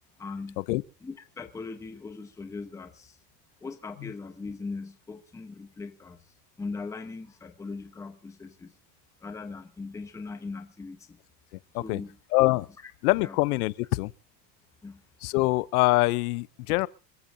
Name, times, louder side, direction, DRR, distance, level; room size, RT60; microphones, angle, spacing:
voice 1, 0.2-0.6 1.0-3.2 3.6-8.7 9.2-11.2 11.8-12.2 12.8-12.9 13.2-13.4 14.8-15.0, left 4 dB, 5° left, 0.9 m, -40 dB
voice 2, 12.3-12.7 13.0-14.1 15.2-16.9, left 21 dB, 65° left, 0.7 m, -24 dB
27.0 x 15.0 x 2.7 m
supercardioid pair, 165°, 48 cm